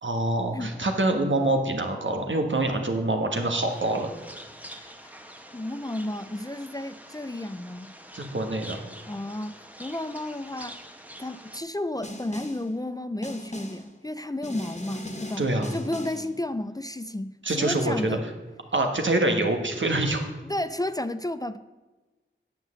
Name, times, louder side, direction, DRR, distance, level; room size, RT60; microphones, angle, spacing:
voice 1, 0.0-4.1 4.4-4.5 8.1-8.8 15.4-15.7 17.4-18.2 18.7-20.2, right 2 dB, 70° right, 4 dB, 1.4 m, -25 dB
sound 1, 3.7-11.6, equal, 5° right, 1.0 m, -46 dB
voice 2, 5.5-7.9 9.1-10.8 11.2-15.5 15.7-18.3 20.4-21.6, left 1 dB, 20° left, 12 dB, 0.4 m, -32 dB
Snare drum, 12.0-12.7 13.2-13.9 14.4-16.3, left 1 dB, 35° left, 1.5 m, -39 dB
9.0 x 6.0 x 7.6 m, 1.2 s
wide cardioid pair, 55°, 20 cm